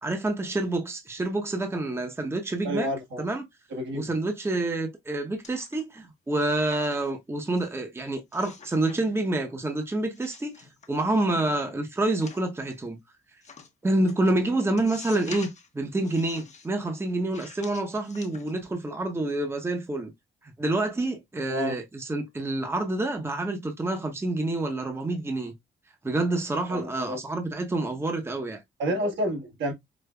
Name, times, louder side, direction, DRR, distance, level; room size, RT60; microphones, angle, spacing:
voice 1, 0.0-2.9 3.2-3.5 3.9-13.0 13.8-15.5 15.7-20.1 20.4-25.5 26.0-28.6, right 2 dB, 10° right, 0.8 m, -28 dB
voice 2, 2.6-3.2 3.7-4.1 21.5-21.8 26.7-27.2 28.8-29.7, equal, 70° right, 1.4 m, -29 dB
Paper Interactions, 5.4-6.0 6.3-7.2 7.6-7.7 8.3-9.0 9.3-9.7 10.1-11.2 12.0-12.7 13.4-13.7 14.1-14.2 14.8-15.7 16.0-16.7 17.3-18.8 19.1-19.3, left 5 dB, 35° left, 0.8 m, -47 dB
5.1 x 2.1 x 2.2 m
cardioid pair, 90°, 20 cm